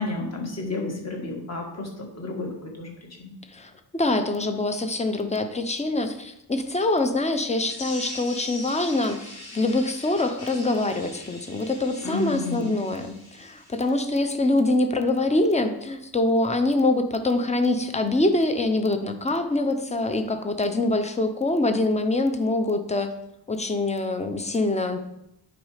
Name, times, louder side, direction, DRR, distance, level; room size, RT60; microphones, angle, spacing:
voice 1, 0.0-2.9 3.2-3.3 12.0-12.8, left 3 dB, 35° left, 0 dB, 1.6 m, -31 dB
voice 2, 3.5-23.1 23.5-25.0, left 2 dB, 15° left, 8 dB, 0.5 m, -24 dB
sound 1, 7.6-14.1, left 2 dB, 75° left, 2.3 m, -42 dB
9.3 x 4.1 x 4.9 m, 0.83 s
wide cardioid pair, 180°, 44 cm